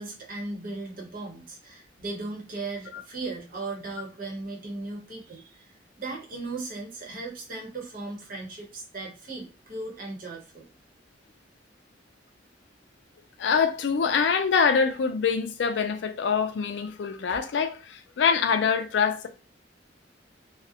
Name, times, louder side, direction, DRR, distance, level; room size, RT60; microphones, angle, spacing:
voice 1, 0.0-10.7, right 3 dB, 50° right, 0.9 m, -37 dB
voice 2, 13.4-19.3, left 6 dB, 80° left, 0.4 m, -24 dB
2.4 x 2.0 x 2.7 m
head